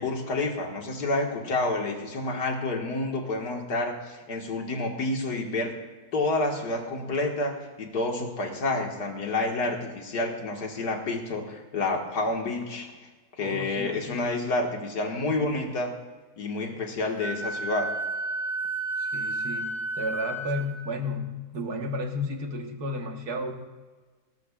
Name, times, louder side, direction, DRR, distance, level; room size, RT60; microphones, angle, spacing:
voice 1, 0.0-5.7 6.1-12.9 13.4-15.9 16.4-17.9, left 2 dB, 90° left, 2 dB, 2.3 m, -29 dB
voice 2, 13.4-14.3 19.0-23.5, left 1 dB, 75° right, 4 dB, 1.9 m, -33 dB
Wind instrument woodwind instrument, 17.2-20.7, right 2 dB, 25° right, 3.8 m, -31 dB
18.5 x 18.5 x 2.4 m, 1.3 s
omnidirectional pair, 1.7 m